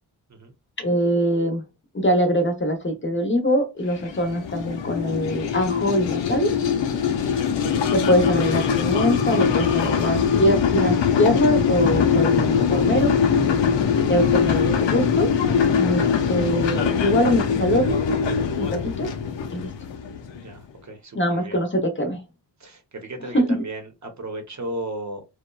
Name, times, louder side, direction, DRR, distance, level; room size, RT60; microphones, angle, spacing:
voice 1, 0.8-1.6 1.9-6.5 7.9-13.1 14.1-15.3 15.8-16.0 16.3-18.0 18.6-19.1 19.5-19.7 21.1-22.2 23.3-23.5, equal, 30° left, 0.7 m, -23 dB
sound 1, 3.9-20.5, left 7 dB, 85° left, 0.6 m, -22 dB
voice 2, 7.2-7.5 20.4-21.6 22.6-25.2, right 1 dB, 40° right, 0.8 m, -35 dB
2.8 x 2.2 x 2.2 m
wide cardioid pair, 105°, 43 cm